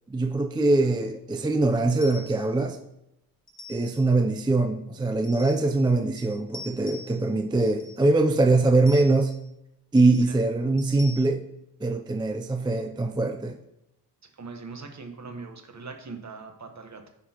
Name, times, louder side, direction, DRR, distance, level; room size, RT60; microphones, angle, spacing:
voice 1, 0.1-2.8 3.7-9.3 9.9-11.4 11.8-13.6, right 2 dB, 10° right, 5 dB, 0.3 m, -23 dB
sound 1, 1.9-2.5 3.5-4.1 5.2-5.9 6.2-7.3 7.6-8.1 8.9-9.4 10.0-10.3 10.8-11.2, left 3 dB, 40° left, 1.2 m, -45 dB
voice 2, 14.4-17.1, right 4 dB, 40° right, 5 dB, 1.0 m, -41 dB
9.4 x 5.9 x 2.9 m, 0.86 s
wide cardioid pair, 140°, 41 cm